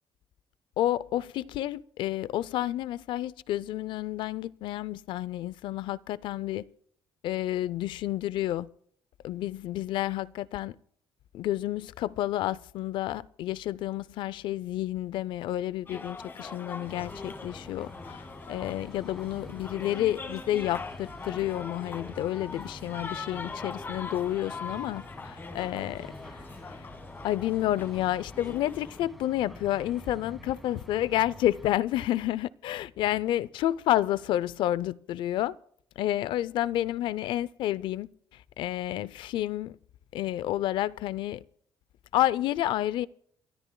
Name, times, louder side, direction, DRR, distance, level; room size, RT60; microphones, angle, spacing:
voice 1, 0.8-6.7 7.2-8.7 9.2-10.8 11.3-26.8 27.2-35.6 36.0-39.8 40.1-41.4 42.1-43.1, left 13 dB, 80° left, 0.5 m, -30 dB
sound 1, 15.9-29.0, left 4 dB, 25° left, 1.2 m, -42 dB
sound 2, 16.8-31.8, equal, ahead, 2.1 m, -47 dB
29.5 x 13.0 x 2.2 m
cardioid pair, 125°, 8 cm